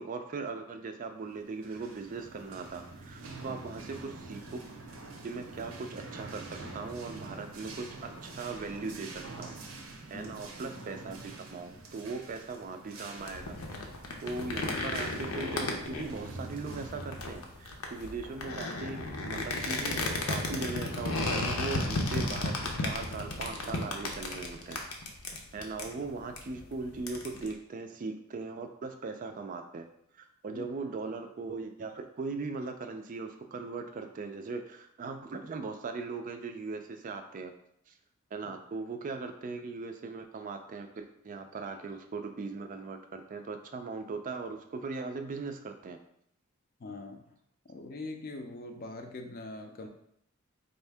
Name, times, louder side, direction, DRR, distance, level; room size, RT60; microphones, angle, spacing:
voice 1, 0.0-4.6 5.2-9.5 10.1-13.6 14.2-24.8 25.5-29.9 30.1-37.5 37.9-38.0 38.3-46.0, right 4 dB, 40° right, 6 dB, 0.3 m, -39 dB
sound 1, 1.4-18.8, right 3 dB, 85° right, 0.7 m, -46 dB
sound 2, 13.2-27.5, left 2 dB, 90° left, 0.7 m, -34 dB
voice 2, 46.8-47.2 47.7-49.9, left 2 dB, 45° left, 5 dB, 0.4 m, -42 dB
4.1 x 2.7 x 3.4 m, 0.71 s
head